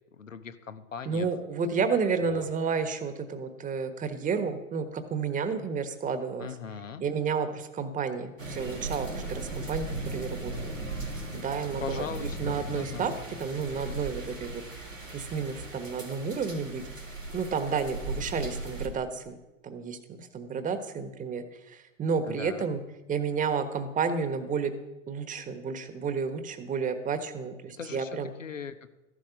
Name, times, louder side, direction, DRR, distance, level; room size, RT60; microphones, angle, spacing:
voice 1, 0.2-1.3 2.3-2.5 6.4-7.0 11.8-13.1 22.2-22.7 27.8-28.1 28.4-28.8, left 7 dB, 80° left, 10 dB, 1.1 m, -39 dB
voice 2, 1.0-6.5 7.0-10.7 11.3-13.1 13.4-14.6 15.1-16.8 17.3-19.4 19.6-22.8 23.1-24.7 25.1-28.3, right 5 dB, 20° right, 9 dB, 1.3 m, -31 dB
sound 1, 8.4-18.9, right 2 dB, 90° right, 2.6 m, -37 dB
14.5 x 11.0 x 5.9 m, 1.0 s
figure-of-eight pair, 80°, 38 cm